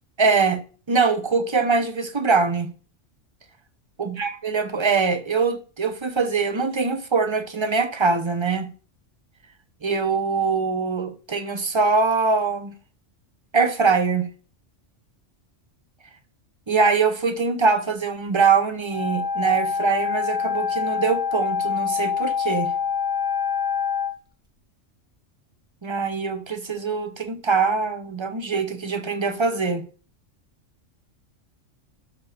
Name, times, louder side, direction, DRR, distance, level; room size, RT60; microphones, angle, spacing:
voice 1, 0.2-0.6 0.9-2.7 4.0-8.7 9.8-12.7 13.5-14.3 16.7-22.7 25.8-29.8, right 4 dB, 25° right, 0.8 m, -23 dB
Wind instrument woodwind instrument, 18.8-24.1, left 6 dB, 5° right, 1.0 m, -25 dB
11.5 x 6.6 x 3.6 m
omnidirectional pair, 1.3 m